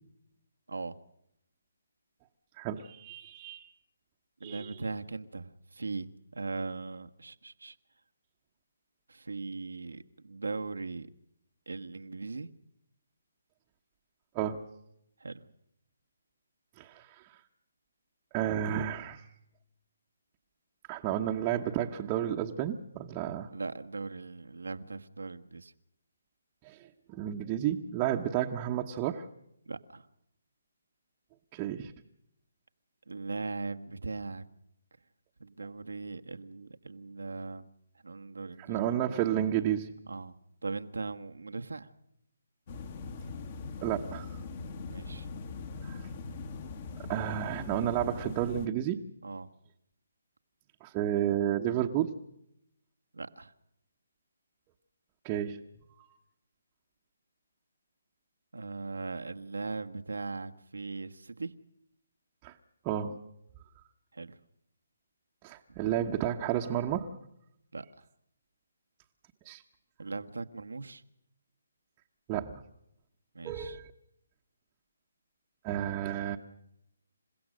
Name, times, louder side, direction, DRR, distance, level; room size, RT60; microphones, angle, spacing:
voice 1, 2.6-3.7 4.4-4.7 14.3-14.6 16.8-17.2 18.3-19.2 20.9-23.5 26.6-26.8 27.1-29.2 31.5-31.9 38.7-39.9 43.8-44.3 45.8-46.0 47.1-49.0 50.8-52.1 55.2-55.6 62.4-62.6 62.8-63.2 65.4-67.1 69.4-69.6 72.3-72.6 73.4-73.9 75.6-76.4, right 11 dB, 20° right, 0 dB, 1.1 m, -31 dB
voice 2, 4.4-7.8 9.1-11.1 11.7-12.5 15.2-15.5 23.5-25.7 29.6-30.1 33.1-34.4 35.4-37.7 38.0-38.9 40.1-40.3 40.6-41.9 44.9-45.3 49.2-49.5 53.1-53.5 58.5-61.5 64.1-64.4 65.7-65.8 67.7-68.0 70.0-71.0 73.3-73.8, right 3 dB, 90° right, 8 dB, 1.5 m, -39 dB
sound 1, 42.7-48.7, left 4 dB, 40° left, 2.0 m, -41 dB
29.0 x 16.0 x 6.4 m, 0.79 s
hypercardioid pair, 160°, 0 cm